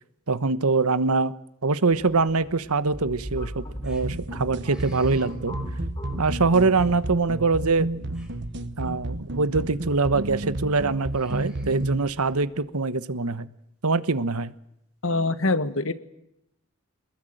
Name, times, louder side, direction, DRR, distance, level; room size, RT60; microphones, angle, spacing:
voice 1, 0.3-1.3 1.6-5.5 6.2-7.9 8.8-13.5 13.8-14.5, right 3 dB, 90° right, 16 dB, 1.2 m, -23 dB
sound 1, 1.9-12.5, equal, 5° right, 6.0 m, -50 dB
sound 2, 2.9-8.3, equal, 20° left, 4.2 m, -37 dB
sound 3, 4.0-12.1, right 1 dB, 50° right, 1.2 m, -32 dB
voice 2, 15.0-15.9, left 2 dB, 65° left, 13 dB, 1.6 m, -24 dB
26.5 x 20.5 x 9.2 m, 0.79 s
head